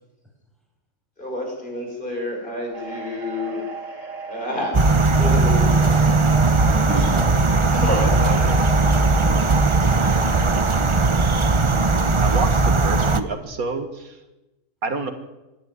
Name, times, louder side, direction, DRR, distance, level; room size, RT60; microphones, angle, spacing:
voice 1, 1.2-3.7 4.3-6.1 6.8-7.1 7.6-8.7, left 1 dB, 35° left, 1 dB, 5.6 m, -29 dB
sound 1, 2.7-12.2, right 4 dB, 60° right, 3.6 m, -36 dB
sound 2, 4.7-13.2, right 3 dB, 25° right, 0.8 m, -18 dB
voice 2, 6.6-8.0 8.3-9.5 9.8-11.6, equal, ahead, 0 dB, 6.6 m, -38 dB
voice 3, 12.2-14.2 14.8-15.1, right 4 dB, 80° right, 7 dB, 2.2 m, -28 dB
25.5 x 11.0 x 9.7 m, 1.0 s
omnidirectional pair, 1.5 m